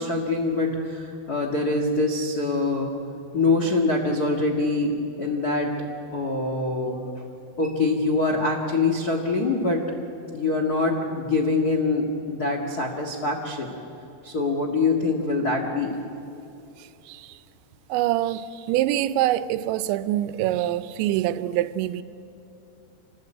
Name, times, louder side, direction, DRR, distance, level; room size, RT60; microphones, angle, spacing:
voice 1, 0.0-2.9 3.3-5.7 6.1-7.0 7.6-9.9 10.3-13.8 14.2-15.9, left 3 dB, 70° left, 0.8 m, -24 dB
voice 2, 17.9-22.0, right 13 dB, 85° right, 3.1 m, -25 dB
26.5 x 20.0 x 8.8 m
omnidirectional pair, 5.1 m